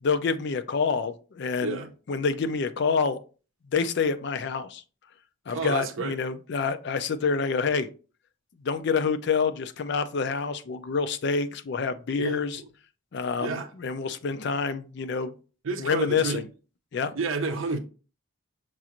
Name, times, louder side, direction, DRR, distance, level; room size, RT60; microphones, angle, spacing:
voice 1, 0.0-1.8 2.1-3.2 3.7-4.8 5.5-7.9 8.6-12.6 13.1-15.3 15.8-16.4 16.9-17.1, left 5 dB, 55° left, 0.4 m, -27 dB
voice 2, 5.5-6.1 12.2-12.7 13.4-13.7 15.6-16.5 17.1-17.8, right 4 dB, 80° right, 0.6 m, -30 dB
6.1 x 2.4 x 2.9 m
head